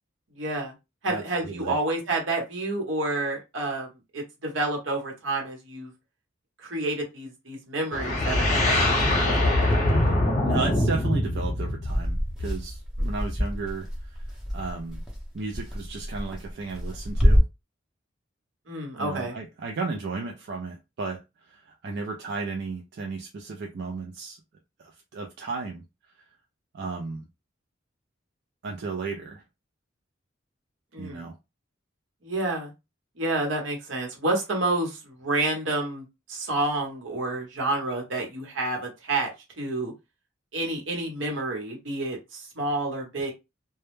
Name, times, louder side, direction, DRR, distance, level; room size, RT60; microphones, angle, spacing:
voice 1, 0.4-0.7 1.0-3.9 4.1-5.9 6.6-9.6 13.0-13.1 18.7-19.3 30.9-31.3 32.2-32.7 33.2-39.3 39.6-39.9 40.5-43.3, right 2 dB, 80° right, 1.0 m, -29 dB
voice 2, 1.1-1.8 10.4-14.2 14.5-15.0 15.3-17.4 19.0-24.4 24.8-25.8 26.1-26.2 26.7-27.3 28.6-29.4 31.0-31.3, right 4 dB, 60° right, 0.4 m, -34 dB
sound 1, 7.9-12.8, left 1 dB, 45° left, 0.8 m, -23 dB
sound 2, 11.8-17.4, equal, 5° right, 0.6 m, -26 dB
2.2 x 2.1 x 3.1 m
head